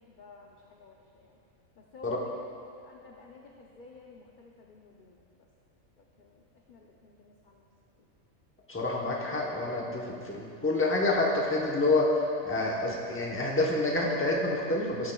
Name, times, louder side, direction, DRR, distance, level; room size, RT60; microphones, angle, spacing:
voice 1, 0.2-1.2 1.9-2.5 2.9-5.2 6.2-6.4 6.7-7.6, left 4 dB, 60° left, 0 dB, 0.5 m, -52 dB
voice 2, 8.7-12.1 12.4-15.1, left 2 dB, 10° left, -2 dB, 0.7 m, -28 dB
13.0 x 7.3 x 2.2 m, 2.7 s
omnidirectional pair, 1.4 m